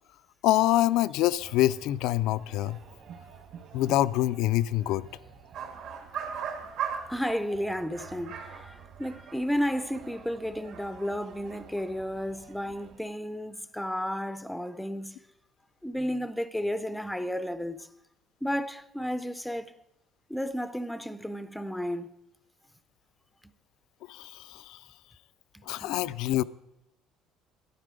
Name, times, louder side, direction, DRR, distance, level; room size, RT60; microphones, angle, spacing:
voice 1, 0.4-2.8 3.7-5.1 24.1-24.8 25.7-26.4, left 14 dB, 75° left, 0.4 m, -25 dB
sound 1, 1.4-13.0, right 7 dB, 50° right, 1.8 m, -51 dB
sound 2, 5.5-7.4 7.7-11.1 11.5-11.9, right 8 dB, 65° right, 2.2 m, -39 dB
voice 2, 7.1-15.2 15.8-17.9 18.4-19.7 20.3-22.1 25.5-25.9, equal, ahead, 0.5 m, -32 dB
12.5 x 11.0 x 4.9 m
cardioid pair, 155°, 0 cm